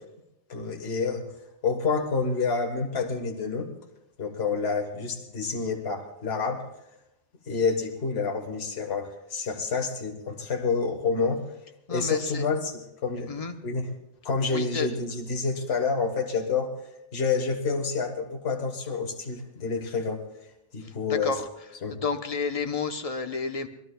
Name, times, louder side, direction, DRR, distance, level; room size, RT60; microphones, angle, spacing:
voice 1, 0.5-1.3 1.6-3.7 4.2-6.7 7.5-11.4 11.9-13.9 14.2-16.7 17.1-20.2 20.7-21.4 21.8-22.0, left 4 dB, 60° left, 1 dB, 1.7 m, -28 dB
voice 2, 11.9-12.5 13.3-13.5 14.5-14.9 21.2-21.4 22.0-23.7, left 4 dB, 35° left, 6 dB, 0.9 m, -30 dB
24.5 x 19.0 x 2.3 m, 0.87 s
omnidirectional pair, 1.2 m